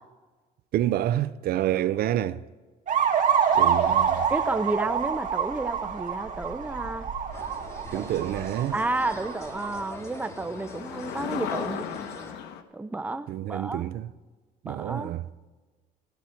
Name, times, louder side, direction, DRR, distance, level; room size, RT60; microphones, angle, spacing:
voice 1, 0.7-2.4 3.5-4.2 7.9-8.8 13.3-14.1 14.6-15.2, right 12 dB, 65° right, 0.5 m, -28 dB
sound 1, 2.9-4.4 8.0-8.1 8.6-8.7 8.8-12.6, left 8 dB, 85° left, 1.1 m, -38 dB
sound 2, 2.9-9.8, right 7 dB, 50° right, 2.2 m, -27 dB
voice 2, 4.3-7.1 7.9-8.1 8.7-12.1 12.7-13.9 14.6-15.1, right 2 dB, 10° right, 0.6 m, -31 dB
sound 3, 7.3-12.3, equal, 15° left, 3.2 m, -43 dB
14.5 x 14.0 x 4.4 m
cardioid pair, 110°, 17 cm